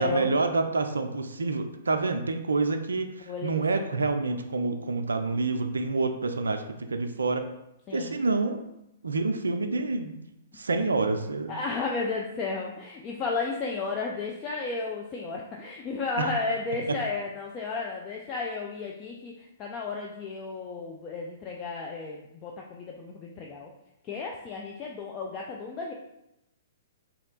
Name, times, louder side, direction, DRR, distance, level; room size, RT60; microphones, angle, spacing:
voice 1, 0.0-7.4 7.9-8.6 9.0-10.2 10.5-11.6 16.2-16.3 16.9-17.0, right 3 dB, 75° right, 7 dB, 0.3 m, -28 dB
voice 2, 3.3-3.8 7.9-8.1 10.8-10.9 11.5-23.7 24.1-25.9, left 4 dB, 30° left, 0 dB, 0.4 m, -33 dB
3.1 x 2.8 x 3.9 m, 0.86 s
figure-of-eight pair, 115°, 0 cm